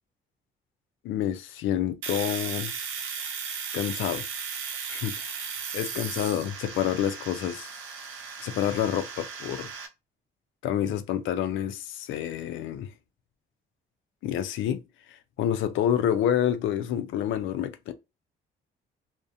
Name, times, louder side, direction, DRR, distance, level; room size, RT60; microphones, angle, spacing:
voice 1, 1.0-2.7 3.7-4.3 4.9-5.2 5.7-7.7 8.4-9.7 10.6-12.9 14.2-14.8 15.1-17.9, left 10 dB, 80° left, 0.4 m, -28 dB
Domestic sounds home sounds, 2.0-9.9, right 6 dB, 85° right, 0.6 m, -36 dB
2.4 x 2.1 x 2.6 m
cardioid pair, 90°, 20 cm